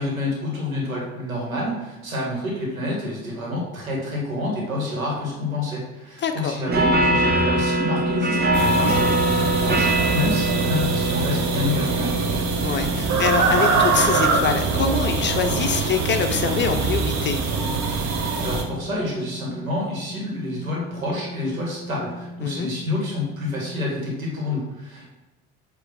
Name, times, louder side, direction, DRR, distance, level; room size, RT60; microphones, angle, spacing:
voice 1, 0.0-12.2 18.2-25.1, left 2 dB, 80° right, -3 dB, 2.0 m, -28 dB
voice 2, 6.2-6.5 12.6-17.4 22.4-22.7, left 6 dB, 25° left, 6 dB, 0.6 m, -24 dB
sound 1, 6.7-24.0, right 1 dB, 25° right, 0.8 m, -26 dB
sound 2, 8.5-18.6, right 4 dB, 40° right, 1.1 m, -23 dB
8.0 x 3.2 x 4.7 m, 1.1 s
figure-of-eight pair, 60°, 41 cm